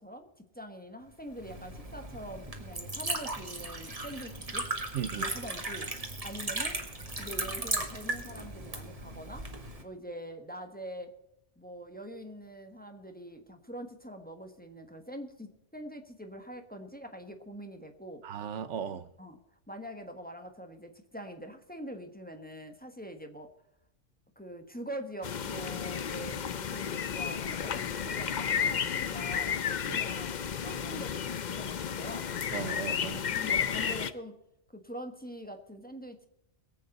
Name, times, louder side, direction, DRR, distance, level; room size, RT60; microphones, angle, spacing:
voice 1, 0.0-4.7 5.1-5.9 6.2-6.8 7.2-9.4 9.8-11.1 11.6-18.2 19.2-19.4 19.7-23.5 24.4-29.6 29.9-32.3 33.3-34.3 34.7-36.3, equal, 10° left, 5 dB, 1.2 m, -44 dB
Liquid, 1.3-9.8, right 2 dB, 30° right, 1.8 m, -37 dB
voice 2, 4.9-5.3 18.2-19.1 29.9-30.0 32.5-33.2, right 8 dB, 90° right, 14 dB, 1.2 m, -36 dB
sound 1, 25.2-34.1, left 7 dB, 50° left, 0.7 m, -32 dB
22.5 x 8.3 x 4.1 m, 0.85 s
omnidirectional pair, 1.2 m